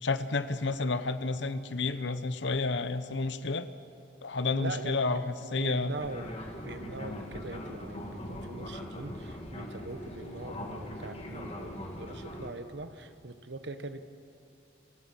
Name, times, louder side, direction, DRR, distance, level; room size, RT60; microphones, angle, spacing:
voice 1, 0.0-3.7 4.2-5.9, left 3 dB, 80° left, 12 dB, 1.0 m, -30 dB
voice 2, 4.4-5.0 5.4-6.3 6.6-14.0, right 2 dB, 75° right, 10 dB, 1.2 m, -42 dB
Fixed-wing aircraft airplane, 6.0-12.5, left 1 dB, 35° left, 2.2 m, -41 dB
29.5 x 21.0 x 5.7 m, 2.7 s
head